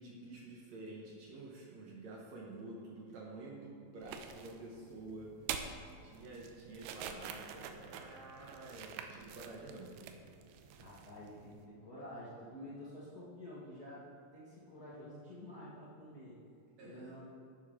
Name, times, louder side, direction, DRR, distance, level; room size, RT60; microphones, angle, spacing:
voice 1, 0.0-5.7 6.0-10.1 16.8-17.1, right 2 dB, 65° right, -2 dB, 1.8 m, -49 dB
sound 1, 4.0-11.7, right 7 dB, 85° right, 2.5 m, -47 dB
voice 2, 10.7-16.4 16.8-17.2, left 1 dB, 85° left, -8 dB, 0.8 m, -50 dB
11.5 x 8.4 x 3.7 m, 2.4 s
omnidirectional pair, 4.3 m